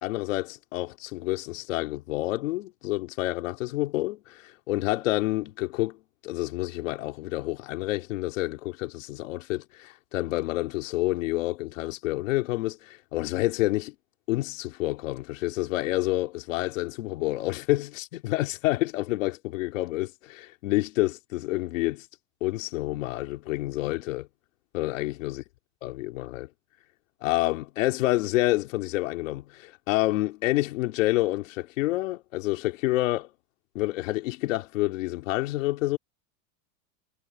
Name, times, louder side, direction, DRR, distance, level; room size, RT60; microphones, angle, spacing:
voice 1, 0.0-6.0 6.2-13.9 14.3-22.0 22.4-24.3 24.7-25.4 25.8-26.5 27.2-33.3 33.7-36.0, left 18 dB, 70° left, 3.0 m, -28 dB
supercardioid pair, 165°, 39 cm